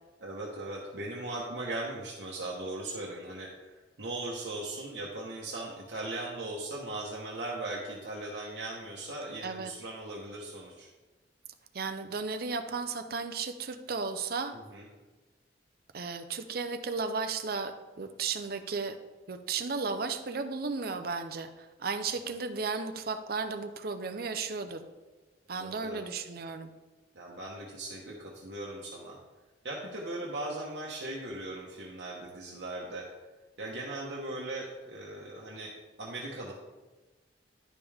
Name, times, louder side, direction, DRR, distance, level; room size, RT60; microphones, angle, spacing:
voice 1, 0.2-10.9 14.5-14.9 22.2-22.3 25.5-26.0 27.1-29.2 29.6-33.1 33.6-35.7 36.0-36.5, right 2 dB, 70° right, -4 dB, 1.1 m, -39 dB
voice 2, 11.7-14.5 15.9-17.7 18.0-18.9 19.3-21.5 21.8-24.8 25.5-26.7, right 4 dB, 55° right, 8 dB, 0.6 m, -34 dB
11.0 x 5.3 x 3.5 m, 1.2 s
head